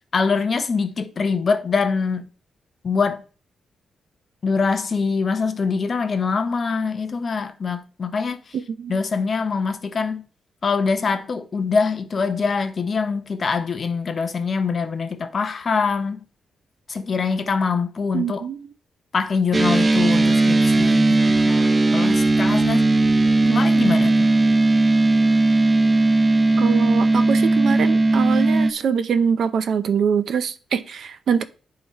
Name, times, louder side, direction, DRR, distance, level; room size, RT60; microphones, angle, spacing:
voice 1, 0.1-2.2 2.8-3.2 4.4-8.6 8.9-10.2 10.6-16.2 16.9-18.5 19.1-22.8 23.5-24.3, left 5 dB, 35° left, 0.8 m, -24 dB
voice 2, 8.5-9.0 18.1-18.7 23.4-23.6 26.6-31.4, right 7 dB, 60° right, 0.6 m, -24 dB
sound 1, 19.5-28.7, right 2 dB, 20° right, 0.4 m, -17 dB
10.0 x 3.9 x 4.1 m
wide cardioid pair, 150°, 0 cm